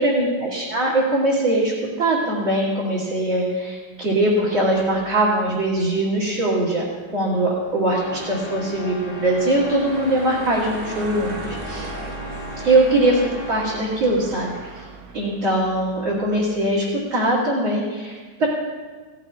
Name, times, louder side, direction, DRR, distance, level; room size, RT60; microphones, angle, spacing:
voice 1, 0.0-6.8 7.1-11.9 12.6-14.8 15.1-18.5, right 1 dB, 40° right, -8 dB, 3.4 m, -21 dB
sound 1, 4.6-16.8, right 4 dB, 75° right, 2.5 m, -39 dB
sound 2, 7.9-14.0, left 3 dB, 90° left, 2.9 m, -36 dB
17.5 x 16.5 x 2.5 m, 1.4 s
omnidirectional pair, 3.8 m